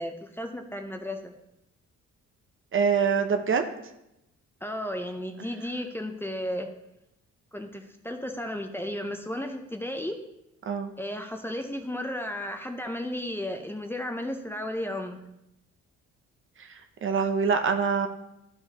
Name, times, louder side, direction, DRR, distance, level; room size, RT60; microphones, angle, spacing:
voice 1, 0.0-1.3 4.6-6.7 7.5-10.2 11.0-15.2, left 1 dB, 5° left, 5 dB, 0.7 m, -34 dB
voice 2, 2.7-3.7 10.7-10.9 16.6-18.1, right 6 dB, 45° right, 7 dB, 0.7 m, -25 dB
11.0 x 4.8 x 2.9 m, 0.84 s
cardioid pair, 90°, 30 cm